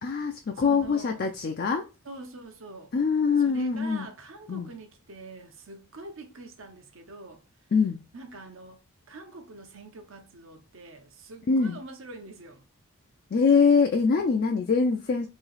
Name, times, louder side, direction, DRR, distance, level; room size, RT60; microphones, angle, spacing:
voice 1, 0.0-1.9 2.9-4.1 4.5-4.7 7.7-8.0 11.5-11.8 13.3-15.3, left 5 dB, 45° left, 0.4 m, -23 dB
voice 2, 0.6-1.3 2.0-2.9 3.4-7.4 8.1-8.8 9.1-12.6, right 2 dB, 60° right, 0.8 m, -44 dB
3.1 x 2.8 x 3.9 m
head